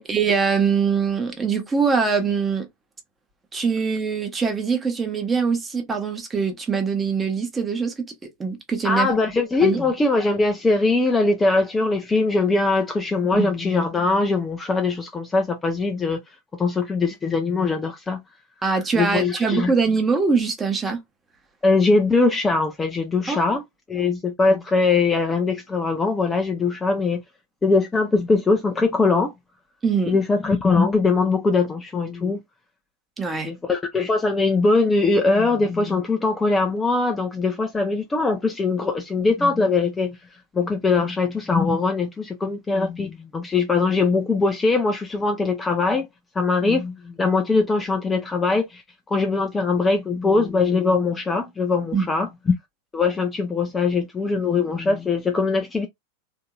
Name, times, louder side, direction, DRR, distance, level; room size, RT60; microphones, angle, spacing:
voice 1, 0.0-2.7 3.5-9.1 9.6-9.8 13.3-13.5 18.6-21.0 23.3-23.6 29.8-30.2 33.2-33.5 51.9-52.1, right 5 dB, 15° right, 1.0 m, -23 dB
voice 2, 8.8-16.2 16.6-18.2 19.0-19.7 21.6-23.6 23.9-27.2 27.6-29.3 30.1-32.4 33.4-40.2 40.5-46.1 46.3-48.8 49.1-52.3 52.9-55.9, left 3 dB, 15° left, 0.6 m, -21 dB
3.7 x 2.7 x 2.2 m
figure-of-eight pair, 90°, 0 cm